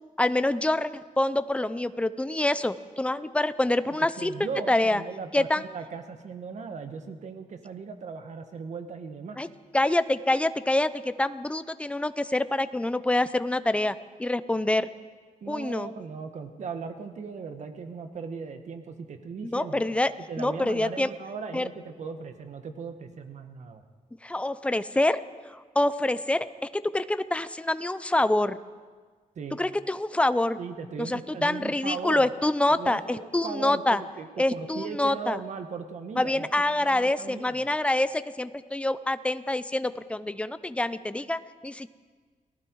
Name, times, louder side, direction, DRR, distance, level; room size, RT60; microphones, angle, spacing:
voice 1, 0.2-4.3 4.7-5.0 5.3-5.6 9.4-9.5 9.7-14.9 15.5-15.9 19.4-21.1 21.5-21.7 24.2-25.2 25.5-28.6 29.6-30.6 31.0-34.0 34.4-35.4 36.2-41.9, left 1 dB, 10° left, 13 dB, 0.6 m, -26 dB
voice 2, 3.9-9.4 15.4-19.8 20.3-23.8 29.3-29.6 30.6-32.3 32.8-37.7, right 5 dB, 55° right, 7 dB, 1.6 m, -38 dB
29.5 x 19.0 x 4.7 m, 1.5 s
wide cardioid pair, 140°, 14 cm